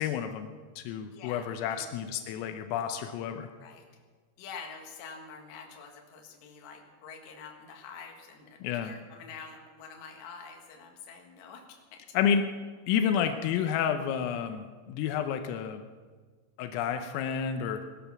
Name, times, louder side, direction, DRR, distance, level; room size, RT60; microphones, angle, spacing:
voice 1, 0.0-3.5 8.6-9.0 12.1-12.4 12.9-15.8 16.6-17.8, left 8 dB, 85° left, 7 dB, 3.5 m, -30 dB
voice 2, 1.1-1.9 3.6-3.9 4.4-12.0, left 5 dB, 65° left, 2 dB, 3.7 m, -47 dB
19.0 x 12.5 x 5.8 m, 1.5 s
omnidirectional pair, 5.8 m